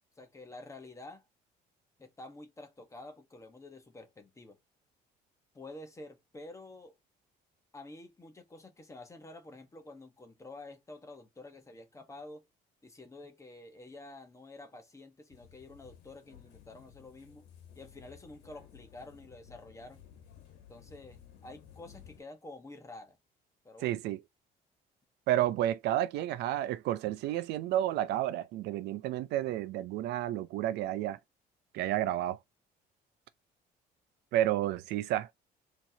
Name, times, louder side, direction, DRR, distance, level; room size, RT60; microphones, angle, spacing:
voice 1, 0.2-1.2 2.0-4.6 5.5-6.9 7.7-12.5 12.8-17.5 17.8-20.0 20.7-23.2 23.6-24.0, left 2 dB, 20° left, 1.1 m, -49 dB
sound 1, 15.3-22.2, left 9 dB, 85° left, 1.2 m, -56 dB
voice 2, 23.8-24.2 25.3-31.2 31.7-32.4 34.3-35.3, right 13 dB, 80° right, 0.5 m, -31 dB
4.3 x 3.0 x 2.7 m
cardioid pair, 110°, 17 cm